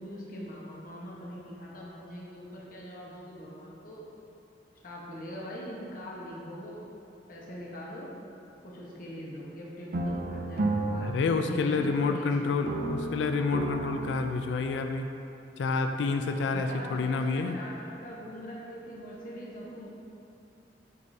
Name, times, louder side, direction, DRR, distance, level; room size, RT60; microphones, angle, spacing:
voice 1, 0.0-4.1 4.8-6.9 7.3-8.1 8.6-12.3 16.5-19.9, equal, 50° left, -5 dB, 1.1 m, -42 dB
sound 1, 9.9-12.3 12.7-14.9, right 2 dB, 55° right, 0.4 m, -33 dB
voice 2, 11.0-15.1 15.6-17.6, left 4 dB, 90° left, 6 dB, 0.3 m, -28 dB
7.7 x 5.3 x 2.7 m, 2.8 s
head